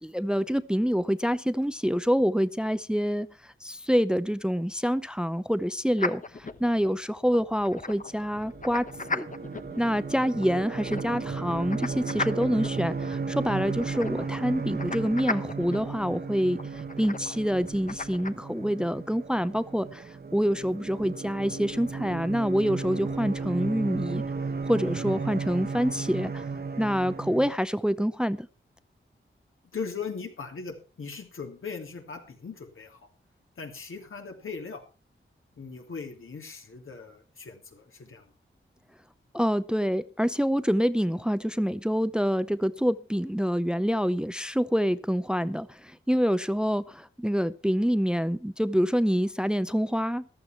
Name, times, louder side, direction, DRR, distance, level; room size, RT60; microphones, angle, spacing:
voice 1, 0.0-9.3 9.8-16.6 17.0-24.2 24.6-26.4 26.8-28.5 39.3-50.2, equal, 5° right, 0.6 m, -26 dB
sound 1, 6.0-18.3, left 3 dB, 40° left, 1.0 m, -38 dB
sound 2, 8.1-27.6, right 4 dB, 50° right, 1.0 m, -35 dB
voice 2, 29.7-33.1 33.6-34.8 35.6-38.3, left 5 dB, 80° left, 2.9 m, -39 dB
14.5 x 12.5 x 4.4 m
wide cardioid pair, 80°, 21 cm